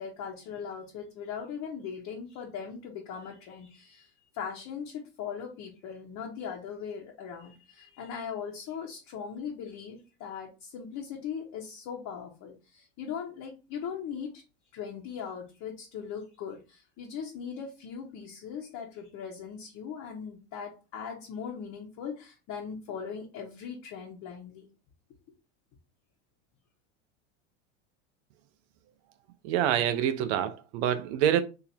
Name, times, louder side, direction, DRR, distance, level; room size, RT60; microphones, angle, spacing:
voice 1, 0.0-14.4 14.7-24.7, left 7 dB, 45° left, 1.2 m, -39 dB
voice 2, 29.4-31.4, right 10 dB, 60° right, 0.6 m, -26 dB
2.8 x 2.7 x 4.3 m
hypercardioid pair, 95°, 37 cm